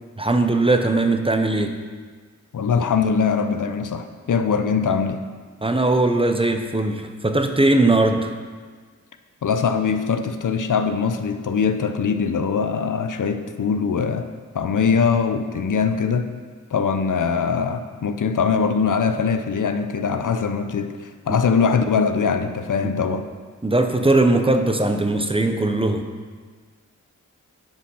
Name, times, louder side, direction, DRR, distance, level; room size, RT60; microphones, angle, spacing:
voice 1, 0.2-1.8 5.6-8.3 21.3-21.4 22.8-22.9 23.6-26.0, right 2 dB, 20° right, 6 dB, 0.8 m, -19 dB
voice 2, 2.5-5.2 9.4-14.3 14.5-16.3 16.7-20.9 21.3-23.2, left 6 dB, 85° left, 8 dB, 0.6 m, -22 dB
10.5 x 5.1 x 5.6 m, 1.5 s
wide cardioid pair, 75°, 30 cm